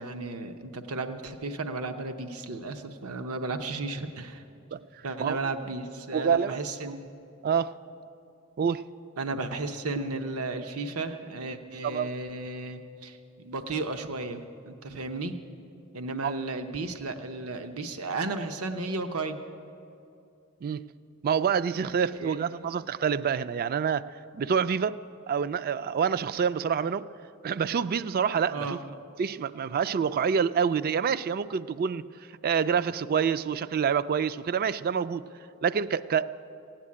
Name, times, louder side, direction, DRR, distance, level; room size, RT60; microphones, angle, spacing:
voice 1, 0.0-4.4 5.0-7.0 9.2-15.4 15.9-19.4 22.1-22.4 28.5-28.8, right 3 dB, 85° right, 7 dB, 0.8 m, -34 dB
voice 2, 6.1-6.6 7.4-7.8 8.6-8.8 11.8-12.1 16.2-16.3 20.6-20.8 21.2-25.0 25.3-27.1 27.4-28.8 29.2-32.1 32.4-35.2 35.6-36.2, right 7 dB, 45° right, 14 dB, 0.3 m, -27 dB
16.5 x 9.0 x 8.5 m, 2.6 s
head